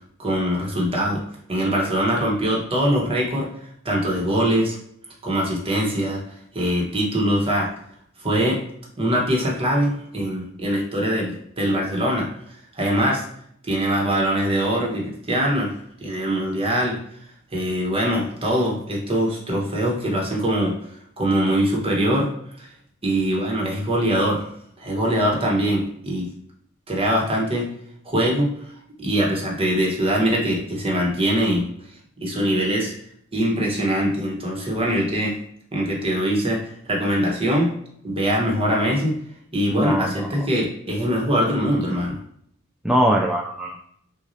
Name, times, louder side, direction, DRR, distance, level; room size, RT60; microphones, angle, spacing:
voice 1, 0.2-1.2 1.5-3.5 3.8-4.8 5.2-6.2 6.5-7.7 8.2-8.6 9.0-12.3 12.7-13.2 13.6-15.7 16.0-17.0 17.5-20.7 21.2-22.3 22.6-22.7 23.0-24.5 24.8-26.3 26.9-27.7 28.0-28.5 29.0-31.7 32.2-32.9 33.3-35.4 35.7-37.7 38.0-39.1 39.5-42.2, equal, 25° right, -2 dB, 1.2 m, -22 dB
voice 2, 39.7-40.3 42.8-43.8, equal, 5° right, -2 dB, 0.3 m, -21 dB
6.1 x 2.4 x 2.7 m, 0.69 s
head